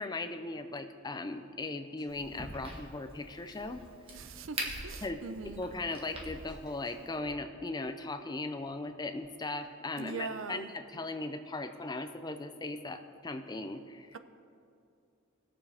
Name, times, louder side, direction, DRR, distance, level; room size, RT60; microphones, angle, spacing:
voice 1, 0.0-3.8 5.0-5.2 5.6-14.2, left 2 dB, 20° left, 8 dB, 0.5 m, -38 dB
sound 1, 2.0-2.1 2.3-3.6 3.8-5.1 5.3-6.9 7.2-7.8, equal, 5° right, 1.8 m, -58 dB
Crack, 2.1-7.2, right 1 dB, 25° right, 1.4 m, -44 dB
voice 2, 4.1-5.6 10.0-10.7, right 4 dB, 65° right, 10 dB, 0.5 m, -41 dB
19.5 x 7.0 x 3.5 m, 2.5 s
head